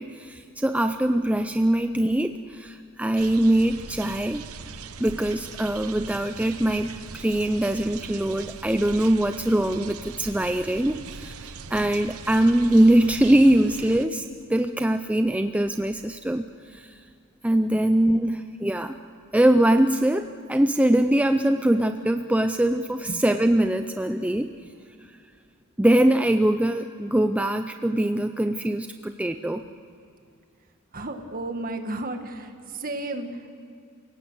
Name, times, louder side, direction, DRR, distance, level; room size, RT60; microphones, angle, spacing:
voice 1, 0.0-4.4 5.0-17.0 17.4-19.0 19.3-24.5 25.8-29.6, right 1 dB, 5° right, 8 dB, 0.5 m, -22 dB
sound 1, 3.2-14.1, right 5 dB, 85° right, 0.9 m, -40 dB
voice 2, 30.9-33.5, right 2 dB, 40° right, 6 dB, 1.8 m, -34 dB
28.0 x 17.5 x 8.1 m, 2.6 s
head